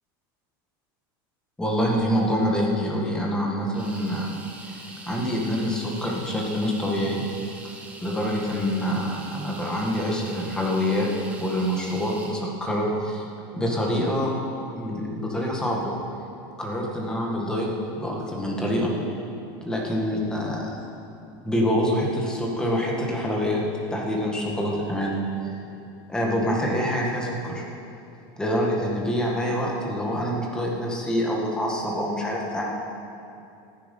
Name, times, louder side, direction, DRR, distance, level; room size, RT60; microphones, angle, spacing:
voice 1, 1.6-4.3 4.6-7.2 8.0-11.1 11.4-13.2 13.5-14.3 14.7-15.9 16.6-17.7 18.0-18.9 19.7-20.6 21.4-23.6 23.9-25.2 26.1-27.6 28.4-32.7, equal, 5° left, -2 dB, 1.9 m, -26 dB
sound 1, 3.7-12.4, right 2 dB, 10° right, 1.3 m, -43 dB
15.0 x 9.7 x 5.5 m, 2.7 s
supercardioid pair, 155°, 12 cm